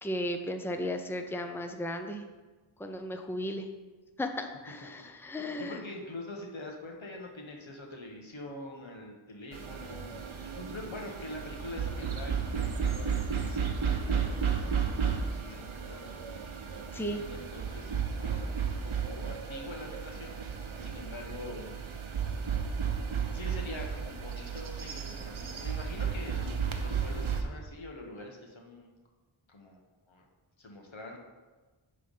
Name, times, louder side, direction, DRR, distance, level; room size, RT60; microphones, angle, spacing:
voice 1, 0.0-2.2 2.8-3.7 4.2-5.8 16.9-17.2, left 1 dB, 5° left, 5 dB, 0.6 m, -35 dB
voice 2, 5.6-10.1 10.6-14.6 15.3-16.1 17.1-20.4 20.8-21.7 23.3-28.9 29.5-29.8 30.1-30.2 30.6-31.2, left 2 dB, 70° left, 1 dB, 1.2 m, -44 dB
sound 1, 9.5-27.4, right 6 dB, 75° right, 0.8 m, -33 dB
9.4 x 3.4 x 5.3 m, 1.3 s
wide cardioid pair, 40°, 49 cm